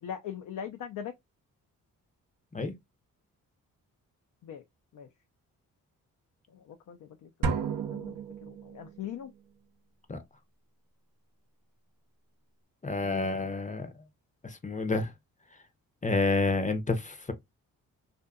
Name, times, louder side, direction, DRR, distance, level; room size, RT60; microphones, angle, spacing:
voice 1, 0.0-1.1 4.4-4.6 4.9-5.1 6.5-9.3, left 9 dB, 60° left, 0.5 m, -42 dB
sound 1, 7.4-9.1, right 5 dB, 60° right, 0.7 m, -33 dB
voice 2, 12.8-13.9 14.4-15.1 16.0-17.3, left 3 dB, 20° left, 0.7 m, -29 dB
2.6 x 2.5 x 2.2 m
supercardioid pair, 50°, 36 cm